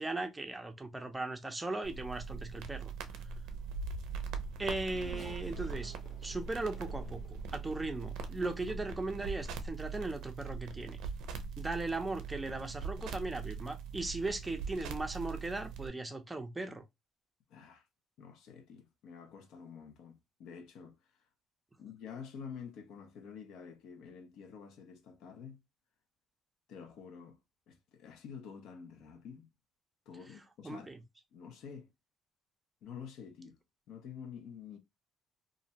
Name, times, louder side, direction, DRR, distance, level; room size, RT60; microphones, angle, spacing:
voice 1, 0.0-2.9 4.6-5.9 6.2-11.0 11.6-16.8 30.6-31.0, right 2 dB, 10° right, 0.5 m, -38 dB
sound 1, 1.8-15.9, right 5 dB, 85° right, 0.4 m, -41 dB
Race car auto racing / Accelerating revving vroom, 4.0-8.6 9.3-9.4 10.5-10.7, left 3 dB, 45° left, 0.8 m, -56 dB
voice 2, 17.5-17.8 18.2-21.0 21.8-25.6 26.7-27.4 27.7-29.5 30.1-30.9 31.3-31.9 32.8-33.6 33.9-34.8, left 6 dB, 75° left, 0.6 m, -49 dB
2.5 x 2.1 x 2.7 m
cardioid pair, 130°, 0 cm